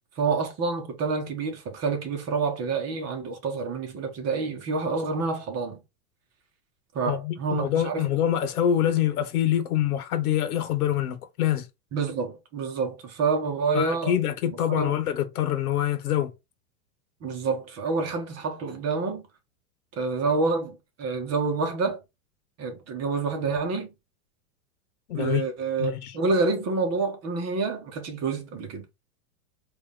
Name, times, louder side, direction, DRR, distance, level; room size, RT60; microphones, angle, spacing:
voice 1, 0.2-5.8 6.9-8.1 11.9-14.2 14.7-14.9 17.2-19.2 19.9-22.0 22.6-23.9 25.2-28.9, right 4 dB, 35° right, 1.8 m, -28 dB
voice 2, 7.1-11.6 13.7-16.3 25.1-25.4 25.8-26.1, left 11 dB, 75° left, 1.3 m, -25 dB
4.6 x 3.0 x 3.7 m
hypercardioid pair, 115°, 45 cm